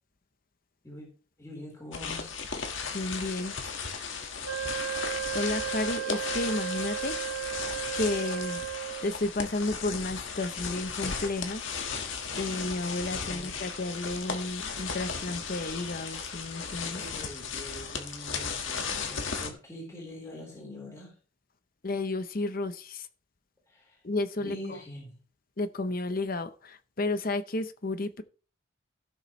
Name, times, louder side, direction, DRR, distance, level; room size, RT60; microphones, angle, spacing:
voice 1, 1.4-2.4 13.2-13.7 16.9-21.2 23.7-24.0 24.4-25.2, left 1 dB, 15° left, -3 dB, 3.8 m, -44 dB
sound 1, 1.9-19.5, left 5 dB, 65° left, 1.7 m, -36 dB
voice 2, 2.9-3.5 5.3-7.1 7.9-8.6 9.0-11.6 12.4-17.0 21.8-23.1 24.0-24.6 25.6-28.2, left 2 dB, 45° left, 11 dB, 0.8 m, -32 dB
Wind instrument woodwind instrument, 4.4-9.2, right 10 dB, 90° right, 0.8 m, -34 dB
16.5 x 6.8 x 3.2 m, 0.38 s
head